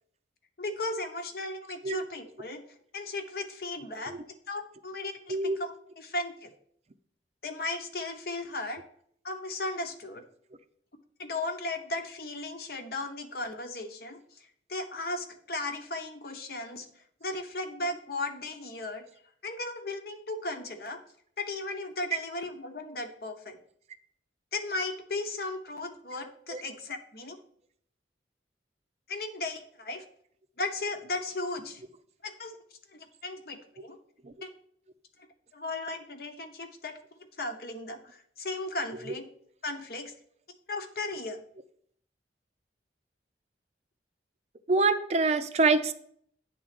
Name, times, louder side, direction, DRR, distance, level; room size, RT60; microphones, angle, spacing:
voice 1, 0.6-2.6 2.9-6.5 7.4-8.8 9.2-10.2 11.2-16.9 17.2-19.1 19.4-21.0 21.4-23.6 24.5-27.4 29.1-30.0 30.6-31.8 32.2-32.5 32.9-34.0 34.4-34.5 35.5-37.0 37.4-39.3 39.6-40.1 40.7-41.4, left 2 dB, 60° left, 6 dB, 0.9 m, -36 dB
voice 2, 44.7-45.9, right 3 dB, 35° right, 10 dB, 0.4 m, -25 dB
9.3 x 3.8 x 5.9 m, 0.65 s
head